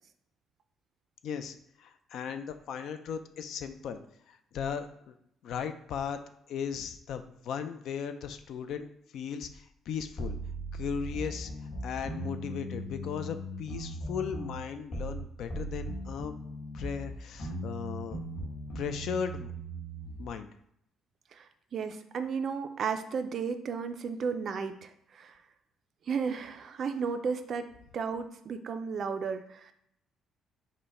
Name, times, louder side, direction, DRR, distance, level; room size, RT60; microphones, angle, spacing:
voice 1, 1.2-4.0 4.3-5.1 5.4-6.2 6.5-10.4 10.7-11.5 11.8-16.3 16.7-18.2 18.7-19.5 20.2-20.5, left 7 dB, 60° left, 9 dB, 0.3 m, -37 dB
sound 1, 10.2-15.2 15.5-20.3, right 1 dB, 35° left, 1.3 m, -38 dB
voice 2, 21.3-25.4 26.1-27.7 27.9-29.7, right 6 dB, 40° right, 8 dB, 0.3 m, -34 dB
5.4 x 2.1 x 4.1 m, 0.72 s
cardioid pair, 170°, 0 cm